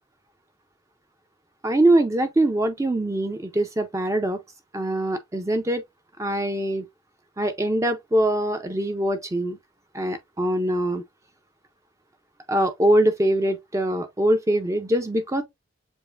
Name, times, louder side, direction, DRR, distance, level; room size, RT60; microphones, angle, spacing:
voice 1, 1.6-4.4 4.7-5.8 6.2-6.8 7.4-9.6 9.9-11.0 12.5-15.4, right 1 dB, 15° right, 0.3 m, -23 dB
6.9 x 2.4 x 2.4 m
head